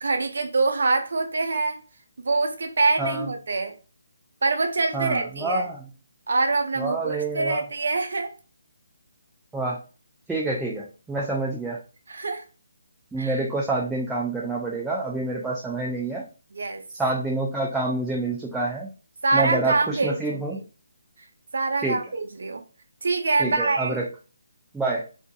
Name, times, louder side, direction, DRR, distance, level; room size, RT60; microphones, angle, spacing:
voice 1, 0.0-1.8 2.2-3.7 4.4-5.7 6.3-8.3 12.1-12.4 13.2-13.4 16.5-16.8 19.2-20.6 21.5-22.6 23.0-24.0, right 3 dB, 70° right, 5 dB, 0.4 m, -25 dB
voice 2, 4.9-5.8 6.8-7.6 9.5-9.8 10.3-11.8 13.1-16.2 17.0-18.9 19.3-20.6 21.8-22.0 23.4-24.1 24.7-25.0, right 2 dB, 5° right, -4 dB, 0.3 m, -27 dB
2.5 x 2.5 x 2.3 m, 0.35 s
hypercardioid pair, 155°, 0 cm